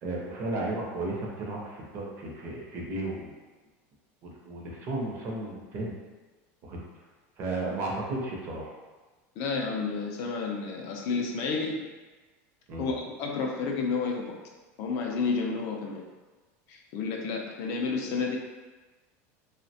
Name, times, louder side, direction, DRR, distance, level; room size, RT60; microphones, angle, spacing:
voice 1, 0.0-3.4 4.2-5.9 6.6-6.8 7.4-8.7 12.7-12.9, right 2 dB, 35° right, -2 dB, 0.5 m, -34 dB
voice 2, 9.4-11.9 12.8-14.4 14.8-16.0 16.7-18.4, left 4 dB, 45° left, 1 dB, 0.3 m, -31 dB
3.1 x 2.1 x 2.7 m, 1.3 s
supercardioid pair, 170°, 8 cm